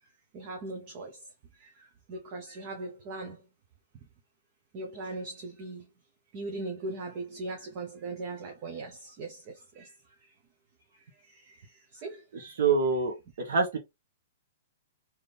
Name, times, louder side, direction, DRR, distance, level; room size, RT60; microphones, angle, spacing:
voice 1, 0.3-1.1 1.6-1.7 2.1-3.4 4.7-5.8 6.3-9.4 9.8-9.9 12.0-12.2, right 2 dB, 25° right, 0.7 m, -38 dB
voice 2, 12.3-13.8, right 4 dB, 55° right, 1.0 m, -26 dB
3.4 x 2.8 x 3.9 m
hypercardioid pair, 180°, 0 cm